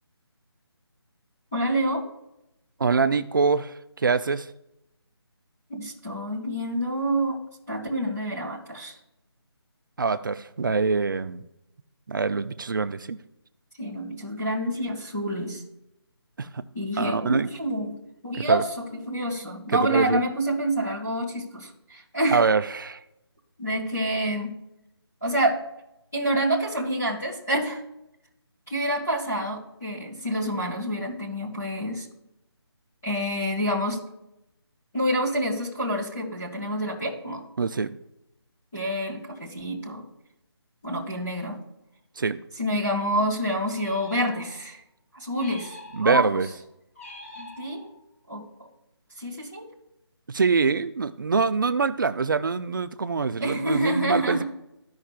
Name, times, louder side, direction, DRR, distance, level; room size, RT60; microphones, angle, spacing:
voice 1, 1.5-2.0 5.7-7.4 7.7-8.9 13.8-15.6 16.7-18.0 18.2-18.7 19.1-22.4 23.6-24.5 25.2-25.6 26.1-27.8 28.7-32.1 33.0-34.0 34.9-37.4 38.7-40.0 40.8-41.6 42.6-44.8 45.1-46.4 47.4-47.9 48.3-48.4 49.2-49.7 53.4-54.4, right 1 dB, ahead, -15 dB, 0.3 m, -27 dB
voice 2, 2.8-4.5 10.0-11.4 12.1-13.2 16.4-16.6 17.0-17.5 18.4-18.6 19.7-20.2 22.3-23.0 37.6-38.0 42.2-42.4 45.9-46.5 50.3-54.4, right 4 dB, 50° right, 11 dB, 0.5 m, -24 dB
sound 1, 43.7-44.8 45.3-46.4 47.0-48.1, left 1 dB, 30° left, 1.3 m, -45 dB
14.5 x 5.6 x 2.4 m, 0.86 s
figure-of-eight pair, 170°, 14 cm